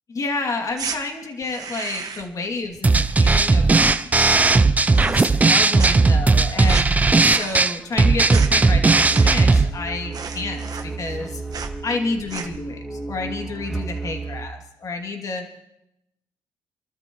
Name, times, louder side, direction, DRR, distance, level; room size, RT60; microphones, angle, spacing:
voice 1, 0.1-4.4 4.9-11.4 11.8-15.4, left 3 dB, 40° left, 2 dB, 2.6 m, -30 dB
sound 1, 0.7-1.0 1.4-2.4 2.6-3.8 4.1-4.6 4.9-5.5 5.8-9.6 9.8-9.9 10.1-11.2 11.5-11.8 12.2-12.7, right 6 dB, 45° right, 1.4 m, -35 dB
sound 2, 2.8-9.7, right 3 dB, 15° right, 0.5 m, -16 dB
sound 3, 5.3-14.5, right 3 dB, 5° left, 1.6 m, -34 dB
29.5 x 13.0 x 3.1 m, 0.82 s
cardioid pair, 120°, 9 cm